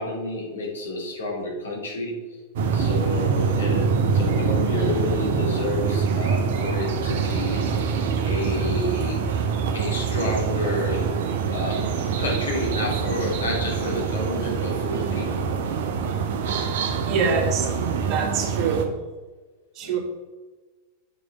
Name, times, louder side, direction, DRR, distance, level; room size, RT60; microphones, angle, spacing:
voice 1, 0.0-2.2 2.7-7.8 8.2-9.2 9.7-11.2 11.5-15.5 19.8-20.0, left 1 dB, 70° left, -3 dB, 2.7 m, -30 dB
sound 1, 2.6-18.9, right 5 dB, 55° right, 0.9 m, -25 dB
voice 2, 17.1-17.7 18.0-18.9 19.8-20.0, right 5 dB, 40° right, 0 dB, 1.8 m, -25 dB
7.8 x 5.2 x 4.7 m, 1.3 s
figure-of-eight pair, 90°, 0 cm